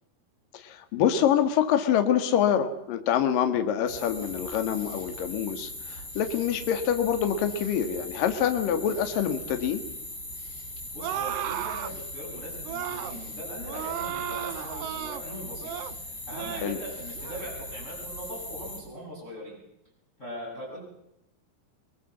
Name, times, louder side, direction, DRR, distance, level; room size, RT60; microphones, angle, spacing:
voice 1, 0.5-9.8 16.6-16.8, left 9 dB, 60° left, 7 dB, 3.1 m, -26 dB
sound 1, 3.9-18.8, left 1 dB, 30° left, 8.2 m, -40 dB
voice 2, 10.9-15.7 16.0-19.6 20.2-20.8, equal, 15° left, -3 dB, 7.6 m, -41 dB
sound 2, 11.0-11.9 12.6-13.2 13.7-15.2 15.6-16.0 16.3-16.7 17.2-17.5, right 11 dB, 90° right, 3.3 m, -34 dB
27.0 x 22.0 x 7.4 m, 0.85 s
omnidirectional pair, 4.7 m